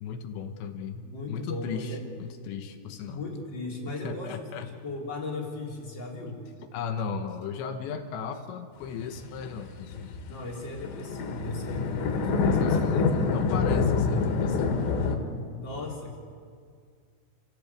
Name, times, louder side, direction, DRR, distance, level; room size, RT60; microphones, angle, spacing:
voice 1, 0.0-3.2 4.0-4.7 6.7-10.1 12.6-13.0 13.3-14.8, left 6 dB, 75° left, 7 dB, 3.2 m, -36 dB
voice 2, 1.0-2.0 2.8-6.4 10.3-13.4 15.5-16.2, left 2 dB, 25° left, -1 dB, 3.5 m, -37 dB
sound 1, 9.0-15.2, left 4 dB, 90° left, 4.5 m, -26 dB
29.5 x 16.0 x 8.4 m, 2.1 s
omnidirectional pair, 5.7 m